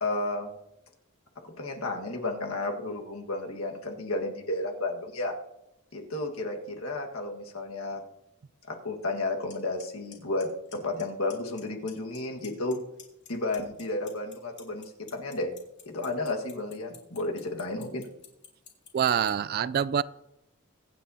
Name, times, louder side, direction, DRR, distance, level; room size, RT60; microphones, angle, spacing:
voice 1, 0.0-0.5 1.4-5.3 5.9-8.0 8.7-12.8 13.3-15.5 15.8-18.1, left 2 dB, 70° left, 2 dB, 1.7 m, -32 dB
Clock, 9.5-9.6 9.8-10.1 10.4-11.0 11.3-11.6 11.9-12.7 13.0-19.3, left 9 dB, 55° left, 2.8 m, -48 dB
voice 2, 18.9-20.0, right 8 dB, 45° right, 19 dB, 0.3 m, -25 dB
24.0 x 9.5 x 2.8 m, 0.89 s
head